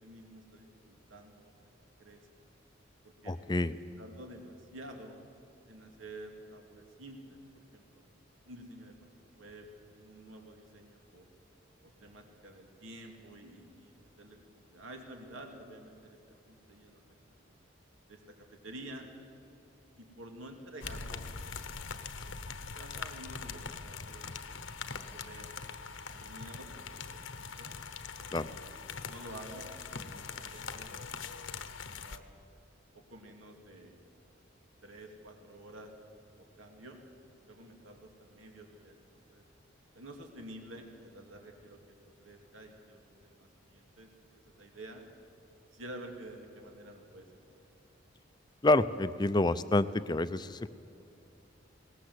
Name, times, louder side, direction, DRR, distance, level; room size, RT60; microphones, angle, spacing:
voice 1, 0.0-1.5 2.0-2.2 3.0-3.3 3.7-5.2 5.7-8.1 8.4-9.7 10.0-11.3 11.8-16.2 16.5-17.5 18.1-18.2 18.5-19.1 20.0-21.3 21.8-22.0 22.2-22.4 22.7-24.8 25.1-25.6 26.1-27.7 28.3-29.7 30.0-31.1 31.4-32.3 32.9-34.0 34.8-35.9 36.6-37.0 37.4-39.4 39.9-41.9 42.2-44.1 44.5-45.0 45.7-47.6, right 1 dB, 90° right, 2 dB, 2.8 m, -50 dB
voice 2, 3.3-3.7 28.3-28.5 48.6-50.7, left 2 dB, 20° left, 13 dB, 0.5 m, -28 dB
sound 1, 20.8-32.2, left 5 dB, 80° left, 1.1 m, -42 dB
21.0 x 18.5 x 8.0 m, 2.7 s
head